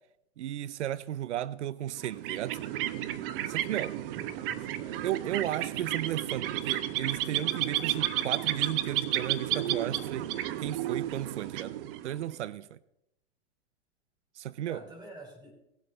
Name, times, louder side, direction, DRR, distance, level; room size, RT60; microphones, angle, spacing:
voice 1, 0.4-2.6 3.5-3.9 5.0-10.3 10.6-11.8 12.0-12.8 14.4-14.8, right 12 dB, 90° right, 0.5 m, -34 dB
sound 1, 1.9-12.3, right 13 dB, 55° right, 0.9 m, -32 dB
voice 2, 3.9-5.1 14.7-15.5, right 1 dB, 10° right, 3.6 m, -48 dB
18.5 x 7.7 x 3.9 m
hypercardioid pair, 125°, 34 cm